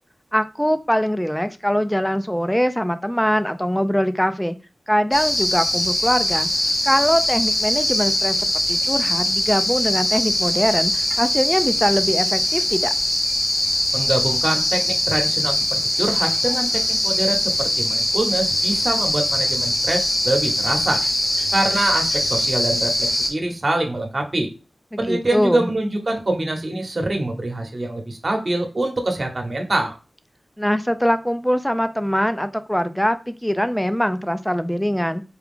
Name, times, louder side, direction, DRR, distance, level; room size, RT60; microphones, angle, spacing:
voice 1, 0.3-4.6 4.9-6.5 6.8-8.4 8.7-12.9 24.9-25.7 30.6-35.2, equal, 5° left, 11 dB, 0.5 m, -22 dB
sound 1, 5.1-23.3, left 1 dB, 75° left, 1.4 m, -22 dB
voice 2, 13.9-21.0 21.5-24.5 25.0-30.0, right 2 dB, 50° right, 3 dB, 1.1 m, -24 dB
4.7 x 2.4 x 3.6 m, 0.32 s
cardioid pair, 50°, 0 cm